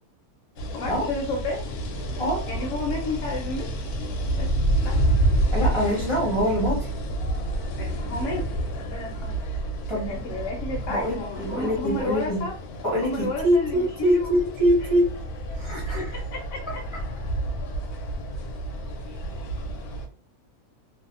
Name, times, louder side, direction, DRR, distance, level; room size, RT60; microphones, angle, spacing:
sound 1, 0.6-20.1, right 1 dB, 90° left, 1.1 m, -29 dB
voice 1, 0.7-1.6 2.5-3.7 4.3-5.0 7.8-8.5 8.8-9.4 9.9-12.6 13.0-14.4 15.7-16.8, left 2 dB, 65° left, -1 dB, 0.9 m, -32 dB
voice 2, 5.5-6.8 9.9-10.1 10.9-12.4 12.8-15.0 15.6-16.1, equal, 25° left, -4 dB, 0.6 m, -24 dB
2.6 x 2.0 x 2.4 m, 0.41 s
omnidirectional pair, 1.5 m